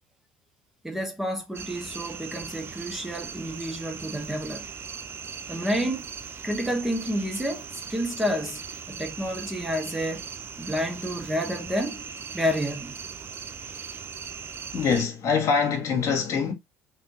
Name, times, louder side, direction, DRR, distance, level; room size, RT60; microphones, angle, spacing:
voice 1, 0.8-4.7 5.5-6.0 6.4-10.2 10.6-12.0 12.3-12.9, equal, 5° right, 1.3 m, -29 dB
sound 1, 1.5-15.0, right 6 dB, 40° right, 0.7 m, -39 dB
voice 2, 14.7-16.5, left 5 dB, 55° left, 1.7 m, -24 dB
3.6 x 3.4 x 2.9 m
hypercardioid pair, 65°, 6 cm